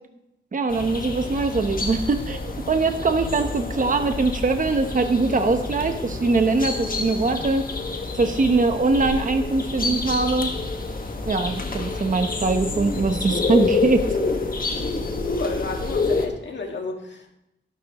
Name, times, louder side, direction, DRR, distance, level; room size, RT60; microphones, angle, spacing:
voice 1, 0.5-7.6 8.1-10.5 11.3-14.0, right 3 dB, 45° right, 7 dB, 0.9 m, -22 dB
sound 1, 0.7-16.3, left 3 dB, 45° left, 1.6 m, -28 dB
voice 2, 15.3-17.3, left 3 dB, 65° left, 2 dB, 1.9 m, -32 dB
12.5 x 12.0 x 3.0 m, 0.86 s
wide cardioid pair, 120°, 20 cm